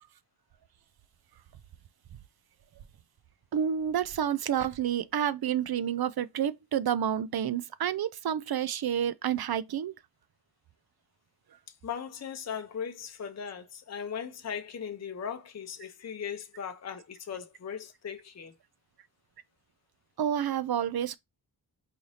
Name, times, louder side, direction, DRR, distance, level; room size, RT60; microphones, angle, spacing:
voice 1, 3.5-9.9 20.2-21.2, right 9 dB, 60° right, 0.5 m, -29 dB
voice 2, 11.8-18.5, left 7 dB, 40° left, 0.6 m, -38 dB
4.0 x 2.6 x 3.2 m
cardioid pair, 45°, 44 cm